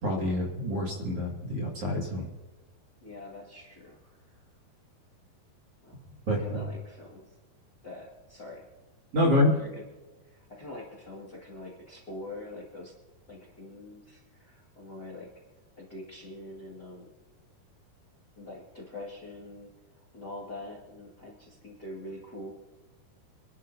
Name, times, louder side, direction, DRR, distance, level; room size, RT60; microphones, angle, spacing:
voice 1, 0.0-2.3 6.3-6.6 9.1-9.5, left 1 dB, 40° right, -2 dB, 2.7 m, -27 dB
voice 2, 3.0-4.4 5.8-6.0 6.3-7.3 7.8-8.7 9.4-9.8 10.2-12.9 13.3-15.3 15.8-17.1 18.4-22.5, left 1 dB, 35° left, -3 dB, 1.8 m, -44 dB
27.0 x 12.0 x 2.8 m, 1.2 s
omnidirectional pair, 4.6 m